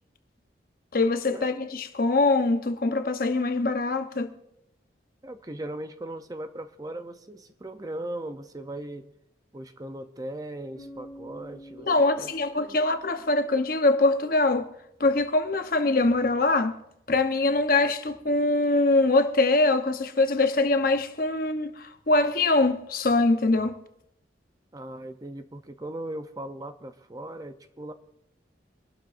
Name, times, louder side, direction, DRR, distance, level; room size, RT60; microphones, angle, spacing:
voice 1, 0.9-4.3 11.8-14.7 15.0-16.8 17.1-23.8, left 2 dB, 50° left, 0.9 m, -23 dB
voice 2, 5.2-9.1 9.5-12.8 24.7-27.9, right 1 dB, 20° right, 0.6 m, -38 dB
Bass guitar, 10.7-14.6, equal, 80° right, 7.0 m, -48 dB
25.0 x 12.0 x 2.6 m
head